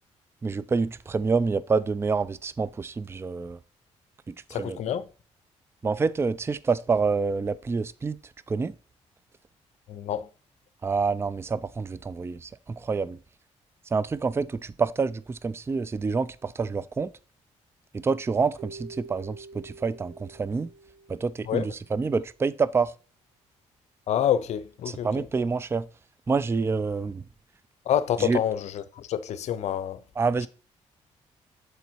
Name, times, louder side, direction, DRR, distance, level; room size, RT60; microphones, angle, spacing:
voice 1, 0.4-3.6 4.3-4.8 5.8-8.2 8.5-8.7 10.8-13.2 13.9-17.1 17.9-20.7 21.1-22.9 24.9-25.9 26.3-27.2 28.2-28.4 30.2-30.5, right 4 dB, 20° right, 0.4 m, -27 dB
voice 2, 4.5-5.1 9.9-10.3 21.5-21.7 24.1-25.3 27.9-30.0, left 10 dB, 70° left, 0.7 m, -27 dB
Keyboard (musical), 18.6-21.8, right 3 dB, 75° right, 1.3 m, -47 dB
8.1 x 4.0 x 4.5 m
cardioid pair, 85°, 12 cm